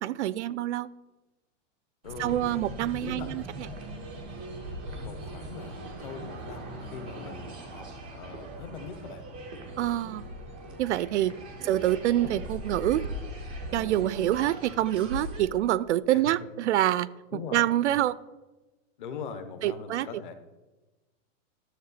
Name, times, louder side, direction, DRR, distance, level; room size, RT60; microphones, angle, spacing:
voice 1, 0.0-0.9 2.2-3.7 9.8-10.2 10.8-11.3 11.6-13.0 13.7-18.2 19.6-20.1, right 13 dB, 65° right, 19 dB, 0.5 m, -26 dB
voice 2, 2.0-3.3 5.0-9.2 16.1-16.3 17.3-17.7 19.0-20.3, left 5 dB, 40° left, 9 dB, 1.0 m, -42 dB
sound 1, 2.0-15.4, right 1 dB, 10° right, 0.3 m, -40 dB
12.5 x 7.0 x 4.1 m, 1.1 s
supercardioid pair, 180°, 37 cm